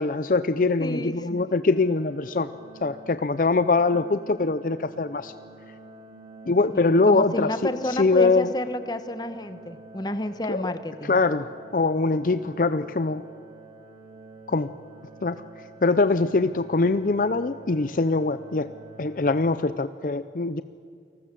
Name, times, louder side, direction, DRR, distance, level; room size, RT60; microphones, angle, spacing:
voice 1, 0.0-2.5 2.8-5.3 6.5-8.5 10.5-10.7 11.0-11.5 11.7-13.2 14.5-14.7 15.2-15.4 15.8-18.7 19.0-20.6, left 3 dB, 50° left, 13 dB, 0.5 m, -23 dB
voice 2, 0.8-1.5 6.7-11.1, left 1 dB, 25° left, 10 dB, 1.2 m, -30 dB
sound 1, 1.6-19.5, right 2 dB, 35° right, 5.2 m, -48 dB
29.0 x 19.5 x 7.6 m, 2.4 s
head